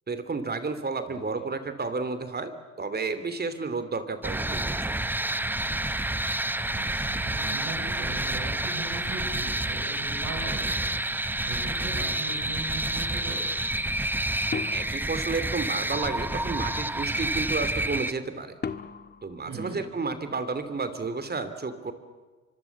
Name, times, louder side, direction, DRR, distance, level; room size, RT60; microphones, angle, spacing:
voice 1, 0.1-5.1 14.5-18.5 19.2-21.9, right 4 dB, 30° right, 11 dB, 3.0 m, -32 dB
sound 1, 4.2-18.1, right 1 dB, 5° right, 0.9 m, -29 dB
voice 2, 6.6-10.8 11.4-13.4 19.5-19.8, right 3 dB, 75° right, 2 dB, 7.9 m, -39 dB
sound 2, 14.5-16.0 18.6-20.4, left 5 dB, 35° left, 1.6 m, -38 dB
25.5 x 23.5 x 7.3 m, 1.4 s
cardioid pair, 90°, 30 cm